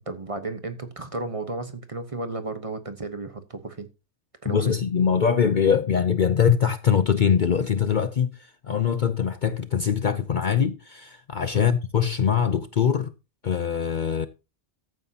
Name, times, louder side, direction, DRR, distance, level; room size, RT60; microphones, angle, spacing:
voice 1, 0.1-3.9 4.4-4.8 11.5-11.7, right 2 dB, 30° right, 1.1 m, -33 dB
voice 2, 4.5-13.1 13.4-14.3, left 7 dB, 50° left, 0.7 m, -23 dB
14.5 x 9.3 x 2.8 m
omnidirectional pair, 1.2 m